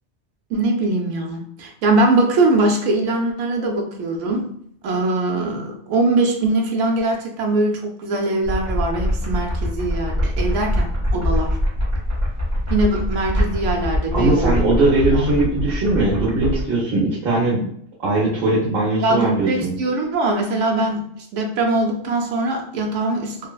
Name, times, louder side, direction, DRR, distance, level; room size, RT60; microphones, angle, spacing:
voice 1, 0.5-4.5 4.8-11.6 12.7-14.6 15.1-15.3 19.0-21.0 21.3-23.5, right 2 dB, 85° right, 1 dB, 1.0 m, -21 dB
sound 1, 8.4-16.7, equal, 15° right, 0.6 m, -23 dB
voice 2, 14.1-17.7 18.0-19.7, right 2 dB, 60° right, -7 dB, 0.9 m, -20 dB
3.1 x 2.0 x 2.2 m, 0.66 s
omnidirectional pair, 1.2 m